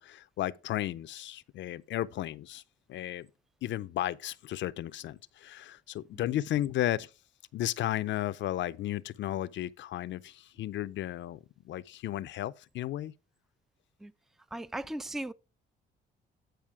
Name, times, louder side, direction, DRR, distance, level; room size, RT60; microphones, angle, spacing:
voice 1, 0.0-2.6 2.9-3.3 3.6-7.1 7.5-11.4 11.6-13.1, left 13 dB, 70° left, 0.5 m, -34 dB
voice 2, 14.5-15.3, right 1 dB, ahead, 0.4 m, -37 dB
9.0 x 5.0 x 4.7 m
cardioid pair, 90°, 20 cm